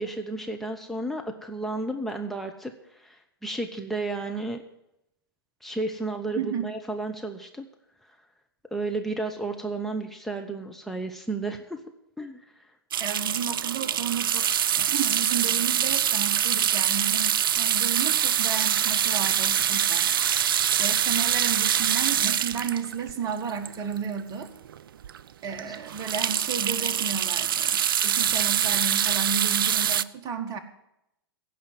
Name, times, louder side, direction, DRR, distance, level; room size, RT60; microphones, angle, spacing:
voice 1, 0.0-4.6 5.6-7.7 8.7-11.8 12.2-12.4 25.7-25.8, right 2 dB, ahead, 3 dB, 0.9 m, -32 dB
voice 2, 6.4-6.7 13.0-14.5 14.7-20.1 20.8-24.5 25.4-30.6, right 6 dB, 30° right, 7 dB, 1.5 m, -32 dB
sound 1, 12.9-24.2 24.7-24.8 25.0-25.2 25.5-30.0, right 9 dB, 65° right, 0.4 m, -24 dB
16.0 x 5.6 x 9.3 m, 0.84 s
figure-of-eight pair, 105°, 12 cm